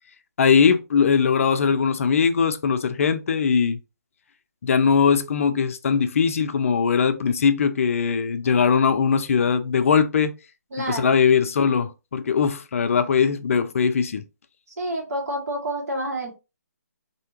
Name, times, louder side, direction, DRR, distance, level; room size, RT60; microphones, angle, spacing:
voice 1, 0.4-3.8 4.6-10.3 10.9-14.2, left 6 dB, 50° left, 0.5 m, -20 dB
voice 2, 10.7-11.2 14.8-16.4, right 1 dB, 60° right, 1.9 m, -29 dB
4.4 x 2.8 x 2.8 m
hypercardioid pair, 150°, 9 cm